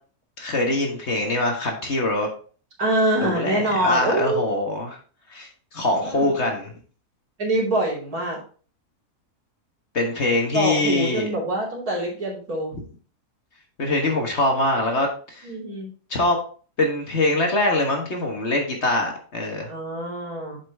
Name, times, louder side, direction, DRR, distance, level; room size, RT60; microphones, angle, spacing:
voice 1, 0.4-2.3 3.2-5.0 5.3-6.7 9.9-11.3 13.8-15.5 16.1-16.4 16.8-19.7, left 2 dB, 45° left, 2 dB, 1.6 m, -23 dB
voice 2, 2.8-4.4 6.0-6.3 7.4-8.4 10.5-12.7 15.4-15.9 19.7-20.6, right 1 dB, 70° right, -4 dB, 3.3 m, -24 dB
7.5 x 5.3 x 3.5 m, 0.40 s
omnidirectional pair, 1.6 m